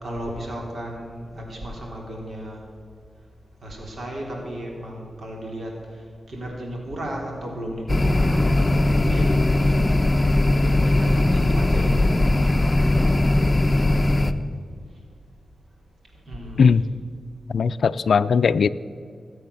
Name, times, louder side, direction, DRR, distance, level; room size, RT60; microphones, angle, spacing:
voice 1, 0.0-2.6 3.6-9.9 10.5-12.1 16.3-16.7, right 1 dB, 65° right, -1 dB, 3.5 m, -34 dB
sound 1, 7.9-14.3, left 2 dB, 25° left, 0.9 m, -19 dB
voice 2, 17.5-18.7, left 6 dB, 80° left, 12 dB, 0.4 m, -18 dB
19.5 x 7.8 x 6.9 m, 2.1 s
cardioid pair, 70°, 0 cm